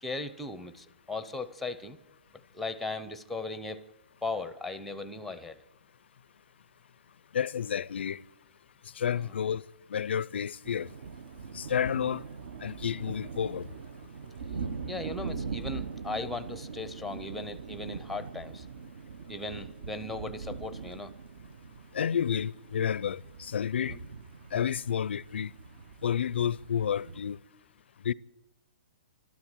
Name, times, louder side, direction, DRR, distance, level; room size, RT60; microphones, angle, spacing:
voice 1, 0.0-2.0 2.5-3.8 4.2-5.6 9.1-9.4 14.9-18.7 19.3-21.1 23.8-24.0, left 3 dB, ahead, 0.6 m, -37 dB
voice 2, 7.3-8.2 9.0-9.6 9.9-10.9 11.5-12.2 12.6-13.7 21.9-23.9 24.5-25.5 26.0-27.4 28.1-28.2, left 8 dB, 85° left, 0.5 m, -30 dB
sound 1, 10.6-27.2, right 5 dB, 65° right, 0.9 m, -42 dB
13.0 x 12.5 x 8.9 m
hypercardioid pair, 170°, 6 cm